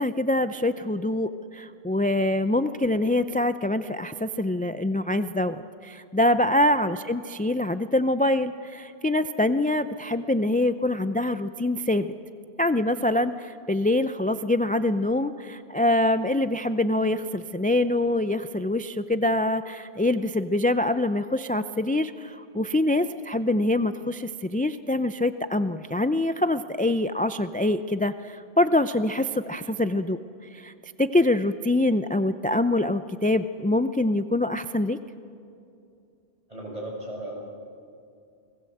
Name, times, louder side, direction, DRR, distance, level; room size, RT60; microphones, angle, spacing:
voice 1, 0.0-12.1 12.6-30.2 30.5-30.7 31.0-35.0, left 1 dB, 15° left, 10 dB, 0.3 m, -25 dB
voice 2, 36.5-37.4, right 1 dB, 35° right, -1 dB, 6.2 m, -36 dB
29.0 x 20.5 x 7.9 m, 2.5 s
omnidirectional pair, 1.1 m